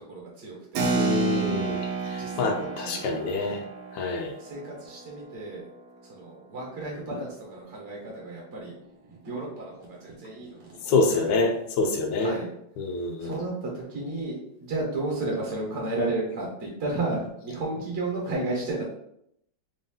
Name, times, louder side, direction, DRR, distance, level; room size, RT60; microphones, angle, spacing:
voice 1, 0.0-0.8 2.2-3.0 3.4-3.6 4.4-5.6 6.1-11.5 12.2-12.5 13.2-18.8, right 2 dB, 40° right, -3 dB, 1.4 m, -33 dB
Keyboard (musical), 0.7-6.8, right 4 dB, 85° right, 0.7 m, -32 dB
voice 2, 0.9-1.8 2.1-3.6 3.9-4.3 10.9-12.3 12.8-13.3, left 3 dB, 75° left, 3 dB, 1.2 m, -26 dB
3.6 x 2.6 x 3.8 m, 0.75 s
omnidirectional pair, 2.3 m